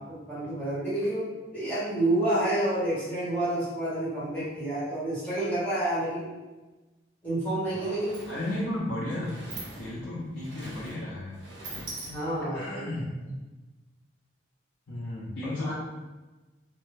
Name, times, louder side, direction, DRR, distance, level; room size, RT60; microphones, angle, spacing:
voice 1, 0.3-6.2 7.2-8.1 12.0-12.9 15.6-15.7, right 1 dB, 10° left, -12 dB, 1.3 m, -29 dB
Sliding door, 7.3-7.4 7.7-12.6, right 2 dB, 65° right, 0.8 m, -43 dB
voice 2, 7.7-9.5 9.8-11.4 12.5-13.1 14.9-15.7, left 1 dB, 85° left, -8 dB, 0.7 m, -34 dB
3.3 x 2.2 x 3.2 m, 1.2 s
head